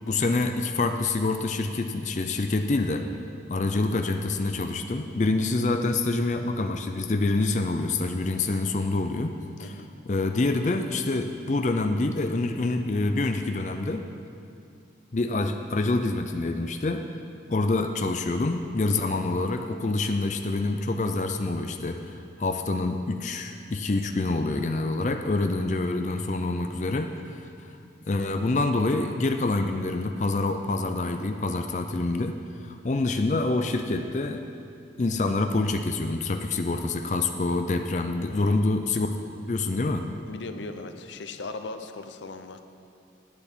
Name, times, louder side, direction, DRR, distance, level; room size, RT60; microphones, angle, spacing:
voice 1, 0.1-3.1 3.5-9.3 9.6-9.7 10.1-14.0 15.1-17.0 17.5-22.1 22.4-27.4 28.1-32.4 32.6-34.4 35.0-39.1 39.5-40.0, left 2 dB, 40° left, 6 dB, 0.4 m, -26 dB
voice 2, 38.3-38.6 40.3-42.6, left 3 dB, 85° left, 8 dB, 0.6 m, -38 dB
9.2 x 7.9 x 7.3 m, 2.5 s
head